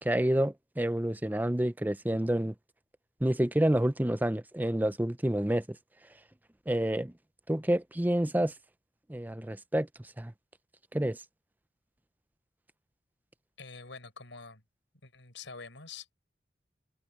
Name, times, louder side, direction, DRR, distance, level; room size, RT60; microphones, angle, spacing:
voice 1, 0.0-2.5 3.2-5.6 6.7-7.1 7.5-8.5 9.1-10.3 10.9-11.2, right 1 dB, 10° right, 0.5 m, -28 dB
voice 2, 13.6-14.6 15.0-16.1, left 4 dB, 90° left, 5.6 m, -46 dB
head